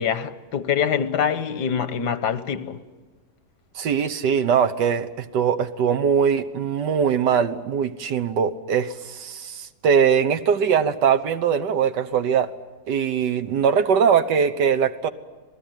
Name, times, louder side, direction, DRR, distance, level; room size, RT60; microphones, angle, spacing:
voice 1, 0.0-2.8, left 7 dB, 80° left, 1.6 m, -24 dB
voice 2, 3.7-12.5 12.9-15.1, right 7 dB, 90° right, 1.7 m, -21 dB
27.5 x 19.0 x 9.2 m
omnidirectional pair, 1.8 m